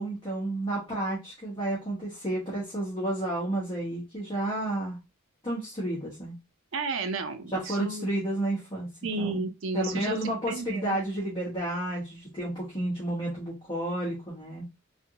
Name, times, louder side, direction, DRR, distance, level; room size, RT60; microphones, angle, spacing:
voice 1, 0.0-5.0 5.4-6.3 7.5-8.9 9.2-9.4 9.7-14.6, right 1 dB, 20° left, -7 dB, 1.2 m, -31 dB
voice 2, 6.7-8.1 9.0-11.0, right 3 dB, 60° right, 7 dB, 0.6 m, -33 dB
3.4 x 2.5 x 2.8 m, 0.25 s
head